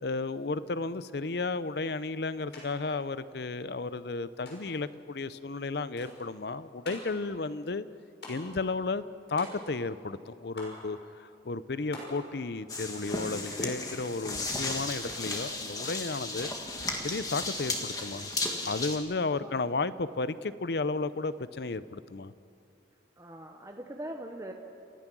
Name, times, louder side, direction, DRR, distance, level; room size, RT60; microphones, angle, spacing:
voice 1, 0.0-7.9 8.3-9.0 9.3-16.5 17.0-18.3 18.6-22.3, left 3 dB, 60° left, 15 dB, 0.6 m, -33 dB
sound 1, 2.5-2.7 2.9-3.7 4.5-4.9 6.0-6.3 6.8-7.2 8.2-8.6 9.4-9.9 10.6-10.9 11.9-12.3 13.4-13.8 15.1-15.3 16.8-17.2, left 1 dB, 80° left, 6.1 m, -45 dB
sound 2, 12.7-19.0, left 2 dB, 20° left, 1.6 m, -35 dB
voice 2, 23.2-24.5, right 1 dB, 15° right, 2 dB, 1.0 m, -41 dB
29.0 x 14.5 x 6.2 m, 2.6 s
head